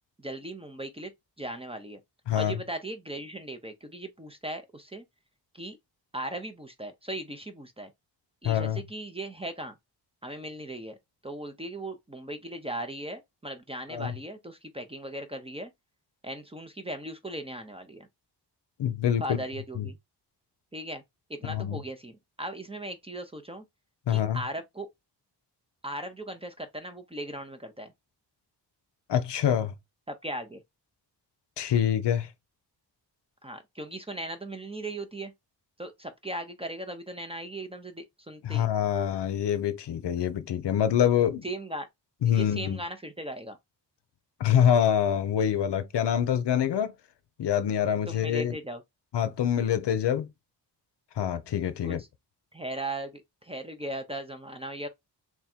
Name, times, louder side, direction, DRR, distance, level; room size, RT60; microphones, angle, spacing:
voice 1, 0.2-1.1 1.4-2.0 2.3-5.0 5.5-5.8 6.1-7.9 8.4-9.8 10.2-11.0 11.2-15.7 16.2-18.1 19.2-20.0 20.7-21.0 21.3-23.6 24.1-24.9 25.8-27.9 30.1-30.6 33.4-35.3 35.8-38.7 41.4-41.9 42.2-43.6 48.1-48.8 51.8-52.1 52.5-54.9, right 1 dB, 15° right, 0.5 m, -38 dB
voice 2, 2.3-2.6 8.4-8.8 13.9-14.1 18.8-19.4 19.8-19.9 21.4-21.8 24.1-24.4 29.1-29.7 31.6-32.3 38.4-41.4 42.2-42.8 44.4-46.9 47.4-48.5 49.1-50.3 51.2-52.0, left 9 dB, 75° left, 0.6 m, -25 dB
3.6 x 2.3 x 4.2 m
wide cardioid pair, 170°, 42 cm